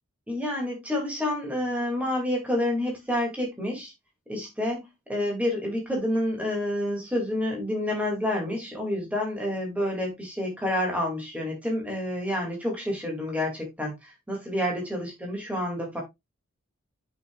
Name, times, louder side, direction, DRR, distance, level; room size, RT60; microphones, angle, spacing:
voice 1, 0.3-3.9 4.3-16.0, left 1 dB, 5° right, 2.3 m, -29 dB
8.1 x 5.7 x 2.4 m
head